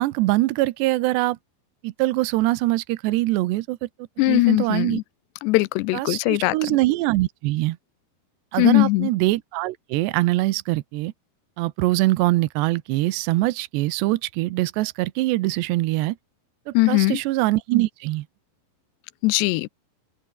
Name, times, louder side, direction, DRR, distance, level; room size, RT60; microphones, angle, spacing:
voice 1, 0.0-1.4 1.8-3.9 4.3-5.0 5.9-7.8 8.5-11.1 11.6-16.2 16.7-18.3, right 18 dB, 85° right, 3.0 m, -23 dB
voice 2, 4.2-5.0 5.4-6.8 8.6-9.1 16.7-17.2 19.2-19.7, left 21 dB, 90° left, 2.8 m, -20 dB
open air
omnidirectional pair, 4.9 m